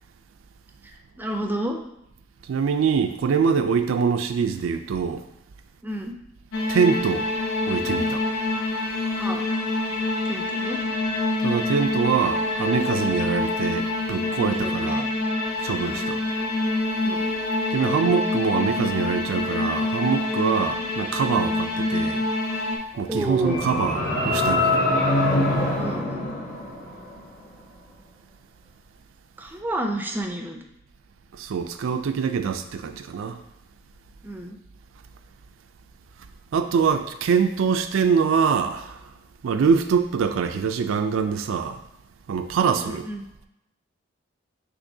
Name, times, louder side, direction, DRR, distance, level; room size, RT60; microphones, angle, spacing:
voice 1, 1.2-1.8 5.8-6.1 9.2-9.5 10.2-10.8 14.6-15.0 15.8-16.1 17.0-17.3 20.5-20.6 23.1-23.7 25.8-26.3 29.4-30.6 34.2-34.6 42.8-43.3, right 1 dB, 10° right, 0.4 m, -30 dB
voice 2, 2.5-5.2 6.7-7.3 7.7-8.2 11.4-15.1 15.6-16.2 17.7-22.2 22.9-24.8 31.3-33.4 36.5-39.0 39.4-41.8 42.3-43.1, right 6 dB, 85° right, 0.4 m, -24 dB
sound 1, 6.5-22.8, left 2 dB, 85° left, 0.7 m, -26 dB
sound 2, 23.0-27.2, left 2 dB, 45° left, 0.8 m, -24 dB
6.3 x 3.0 x 2.7 m
head